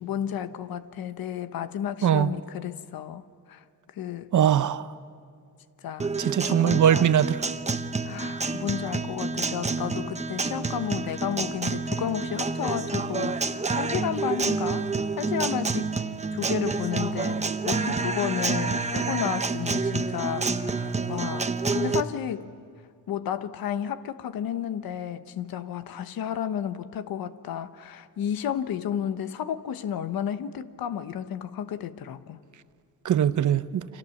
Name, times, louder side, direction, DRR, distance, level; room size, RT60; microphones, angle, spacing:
voice 1, 0.0-4.4 5.8-7.0 8.0-14.9 15.2-15.9 16.3-22.5 23.1-32.4, left 9 dB, 85° left, 1.1 m, -32 dB
voice 2, 4.3-4.9 6.2-7.4 33.0-33.9, right 9 dB, 60° right, 0.8 m, -21 dB
Guitar, 6.0-22.0, right 4 dB, 20° right, 0.9 m, -28 dB
29.5 x 24.5 x 7.2 m
cardioid pair, 115°, 35 cm